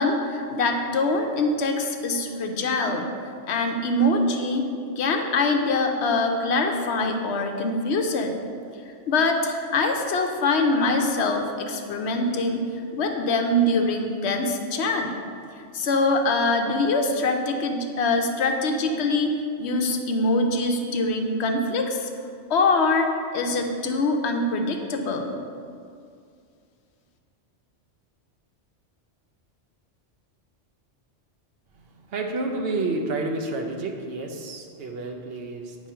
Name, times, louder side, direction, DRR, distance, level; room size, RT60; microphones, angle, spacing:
voice 1, 0.0-3.1 3.5-4.7 5.0-8.3 9.1-12.7 12.9-15.1 15.6-22.1 22.5-25.3, left 2 dB, 70° left, 4 dB, 0.9 m, -24 dB
voice 2, 31.7-35.8, right 2 dB, 60° right, 2 dB, 0.8 m, -30 dB
8.9 x 3.1 x 5.5 m, 2.3 s
omnidirectional pair, 1.2 m